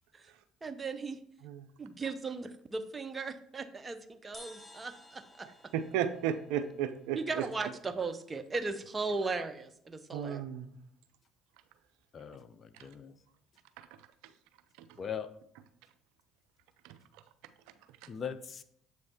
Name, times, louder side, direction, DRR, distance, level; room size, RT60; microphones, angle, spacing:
voice 1, 0.6-1.2 1.8-5.5 7.1-10.4, right 4 dB, 25° right, 9 dB, 0.7 m, -37 dB
sound 1, 4.3-7.9, equal, 5° left, 0.9 m, -56 dB
voice 2, 5.7-7.4 10.1-10.7 12.8-12.9 13.8-13.9 14.8-14.9 16.8-17.0, right 9 dB, 75° right, 10 dB, 0.4 m, -34 dB
voice 3, 12.1-13.1 15.0-15.3 18.1-18.6, left 7 dB, 40° left, 11 dB, 0.5 m, -40 dB
7.6 x 3.2 x 4.4 m, 0.68 s
hypercardioid pair, 70°, 0 cm